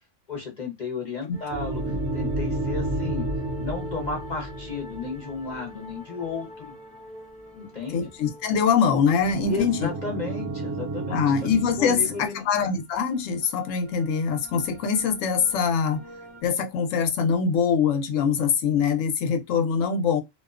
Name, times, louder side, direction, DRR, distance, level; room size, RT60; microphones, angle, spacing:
voice 1, 0.3-3.3 3.6-6.7 7.5-8.1 9.5-11.2 11.8-12.4, left 4 dB, 40° left, 0.7 m, -33 dB
sound 1, 1.3-16.4, left 1 dB, ahead, 0.6 m, -47 dB
sound 2, 1.5-5.9 8.9-12.3, right 2 dB, 80° right, 1.0 m, -31 dB
voice 2, 7.9-9.9 11.1-16.0 16.4-20.2, left 6 dB, 80° left, 1.0 m, -23 dB
2.6 x 2.1 x 2.3 m
omnidirectional pair, 1.3 m